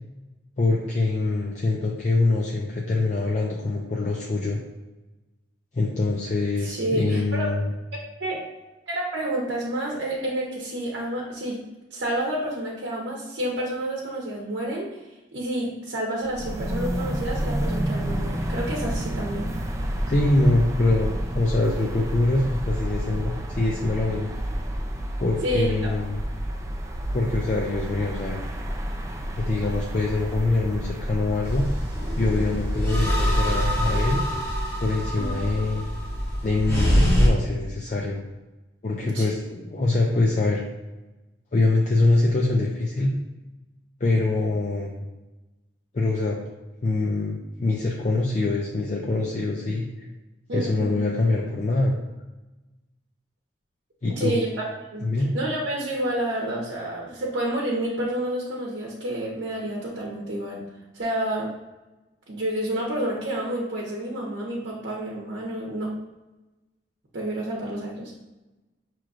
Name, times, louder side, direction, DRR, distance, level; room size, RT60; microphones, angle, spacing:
voice 1, 0.6-4.6 5.7-7.7 20.1-24.3 25.2-26.2 27.1-28.4 29.3-31.7 32.2-34.2 34.8-35.9 36.4-38.2 38.8-40.6 41.5-43.1 44.0-45.0 45.9-46.4 46.8-50.1 50.5-52.0 54.0-54.4 55.0-55.3, left 2 dB, 40° left, -2 dB, 0.5 m, -24 dB
voice 2, 6.6-7.5 8.2-8.4 8.9-11.6 11.9-14.9 15.3-19.5 25.4-25.9 35.1-35.3 39.1-39.3 50.5-51.0 54.2-54.5 54.9-55.1 55.3-60.7 60.9-61.5 62.3-65.9 67.1-68.1, right 1 dB, 70° right, -3 dB, 0.8 m, -29 dB
sound 1, 16.2-34.5, equal, 15° right, 0.4 m, -30 dB
sound 2, 31.4-37.3, equal, 15° left, 0.9 m, -24 dB
6.0 x 3.1 x 2.5 m, 1.1 s
head